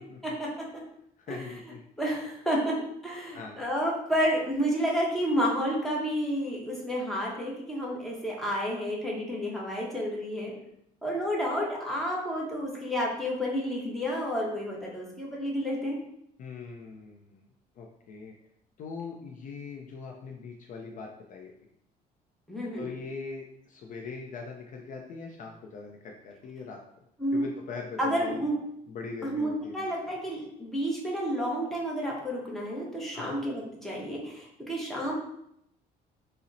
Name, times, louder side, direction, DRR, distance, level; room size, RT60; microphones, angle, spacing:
voice 1, 1.2-1.8 3.3-3.6 16.4-17.5 17.8-18.4 18.8-21.5 22.8-26.8 27.3-28.4 28.9-29.9 33.1-33.3, left 4 dB, 50° left, 1 dB, 0.4 m, -41 dB
voice 2, 2.0-2.7 3.0-10.5 11.0-16.0 22.5-22.9 27.2-27.4 28.0-28.5 29.2-35.1, equal, ahead, -4 dB, 0.8 m, -30 dB
3.9 x 2.0 x 2.6 m, 0.74 s
cardioid pair, 110°, 17 cm